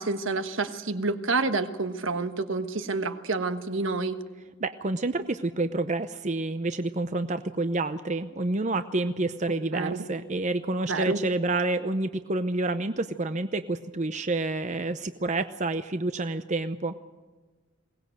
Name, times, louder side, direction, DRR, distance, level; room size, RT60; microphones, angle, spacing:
voice 1, 0.0-4.2 9.7-10.0 10.9-11.2, right 3 dB, 70° right, 9 dB, 1.3 m, -28 dB
voice 2, 4.6-16.9, right 2 dB, 35° right, 10 dB, 0.7 m, -28 dB
22.0 x 19.0 x 7.8 m, 1.3 s
head